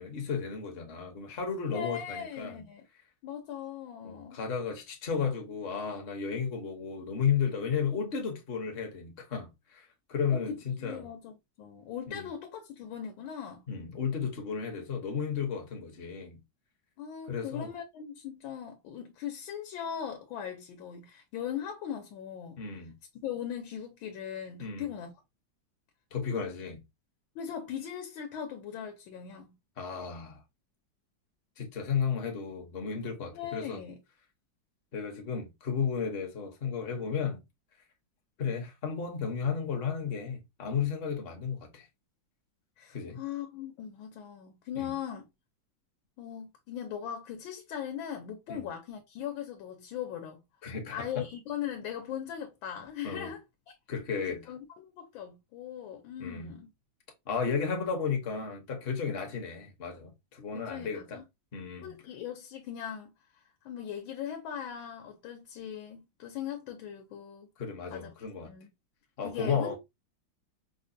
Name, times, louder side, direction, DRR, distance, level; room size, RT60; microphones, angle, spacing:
voice 1, 0.0-2.6 4.0-11.1 12.1-12.3 13.7-16.4 17.3-17.7 22.6-22.9 24.6-24.9 26.1-26.8 29.8-30.4 31.6-33.8 34.9-37.4 38.4-41.9 42.9-43.2 44.8-44.9 48.5-48.6 50.6-51.3 53.0-53.3 53.9-54.5 56.2-56.5 57.3-61.2 61.5-62.0 67.6-68.5 69.2-69.8, left 6 dB, 45° left, 0.7 m, -33 dB
voice 2, 1.6-2.8 3.2-4.4 10.3-13.6 17.0-22.6 23.2-25.1 27.3-29.5 33.3-34.0 42.8-45.3 46.2-50.4 50.9-53.4 54.2-56.7 60.5-61.2 61.8-63.1 63.6-67.5 67.9-68.1 68.4-68.7 69.2-69.8, left 9 dB, 80° left, 1.4 m, -39 dB
5.0 x 2.2 x 2.6 m
omnidirectional pair, 2.1 m